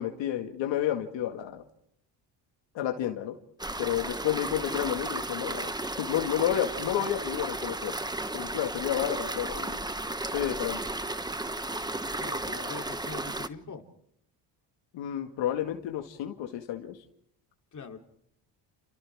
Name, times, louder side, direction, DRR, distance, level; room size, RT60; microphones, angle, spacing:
voice 1, 0.0-1.6 2.7-3.4 3.8-5.7 6.0-7.9 8.3-9.8 10.3-10.8 14.9-17.0, left 11 dB, 80° left, 4 dB, 2.1 m, -30 dB
sound 1, 3.6-13.5, right 2 dB, 10° right, 1.2 m, -34 dB
voice 2, 12.2-13.8 17.7-18.0, left 5 dB, 40° left, 3 dB, 3.4 m, -42 dB
30.0 x 29.0 x 3.6 m, 0.73 s
cardioid pair, 90°, 44 cm